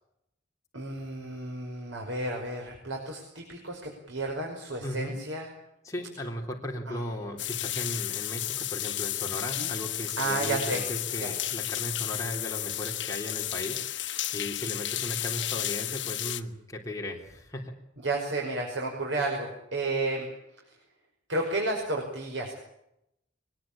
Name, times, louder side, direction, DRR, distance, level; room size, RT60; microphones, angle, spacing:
voice 1, 0.7-5.5 6.9-7.1 9.6-9.7 10.2-10.8 11.2-11.3 18.0-20.3 20.7-20.8 21.3-22.5, right 2 dB, 90° right, 0 dB, 5.6 m, -32 dB
voice 2, 4.8-5.2 5.8-17.7, left 1 dB, 15° left, -1 dB, 3.6 m, -36 dB
sound 1, 7.4-16.4, left 13 dB, 70° left, 1.3 m, -33 dB
23.0 x 21.0 x 8.8 m, 0.82 s
head